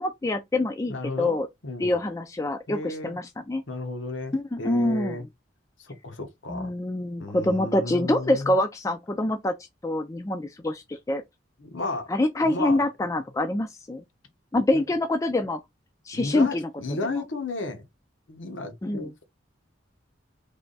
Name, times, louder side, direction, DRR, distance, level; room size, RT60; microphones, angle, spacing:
voice 1, 0.0-1.5 1.8-3.6 4.3-5.2 6.5-9.5 9.8-11.2 12.1-14.0 14.5-15.6 16.1-16.7 17.1-17.2 18.8-19.1, left 1 dB, 15° left, 0.3 m, -25 dB
voice 2, 0.9-1.4 1.6-1.9 2.7-3.2 3.7-5.3 5.8-6.7 7.2-8.5 11.6-12.1 12.4-12.8 14.7-14.8 16.1-17.8 18.3-19.2, left 2 dB, 80° left, 1.0 m, -33 dB
3.4 x 2.2 x 3.9 m
head